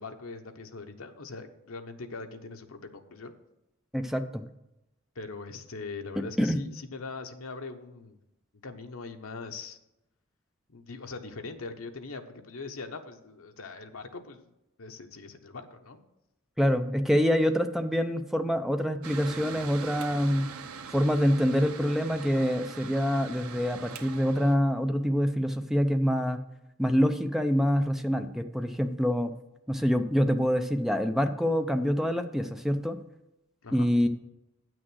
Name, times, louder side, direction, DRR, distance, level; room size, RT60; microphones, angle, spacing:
voice 1, 0.0-3.3 5.2-8.1 8.6-9.8 10.7-14.5 14.8-16.0 33.6-33.9, left 4 dB, 75° left, 6 dB, 0.9 m, -41 dB
voice 2, 3.9-4.4 6.4-6.6 16.6-20.5 20.9-26.4 26.8-29.3 29.7-33.0 33.7-34.1, equal, ahead, 6 dB, 0.5 m, -26 dB
Mechanical fan, 19.0-24.6, right 5 dB, 85° right, 0.7 m, -42 dB
8.8 x 6.2 x 6.2 m, 0.90 s
head